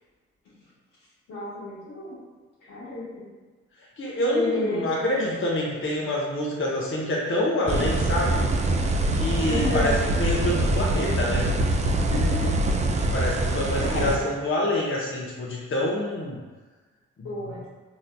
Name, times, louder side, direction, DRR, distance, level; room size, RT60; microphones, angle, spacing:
voice 1, 1.3-2.2 2.6-3.3 4.3-4.9 5.1-5.4 9.5-9.9 12.1-12.6 13.8-14.3 17.2-17.7, left 2 dB, 70° left, -7 dB, 1.2 m, -31 dB
voice 2, 4.0-8.4 9.1-11.5 13.1-16.4, left 1 dB, 35° left, -4 dB, 0.8 m, -27 dB
sound 1, 7.7-14.2, right 2 dB, 20° right, 0.4 m, -24 dB
3.9 x 2.7 x 2.2 m, 1.3 s
hypercardioid pair, 45°, 33 cm